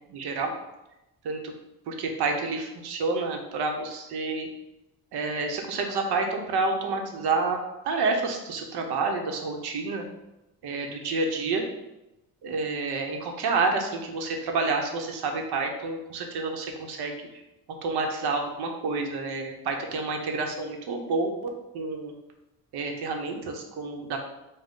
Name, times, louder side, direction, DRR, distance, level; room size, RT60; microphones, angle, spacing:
voice 1, 0.1-0.5 1.2-1.5 1.9-4.5 5.1-7.6 7.8-10.0 10.6-11.6 12.4-17.1 17.8-22.1 22.7-24.2, right 3 dB, 85° right, 3 dB, 0.8 m, -29 dB
5.3 x 2.2 x 3.8 m, 0.94 s
cardioid pair, 180°, 38 cm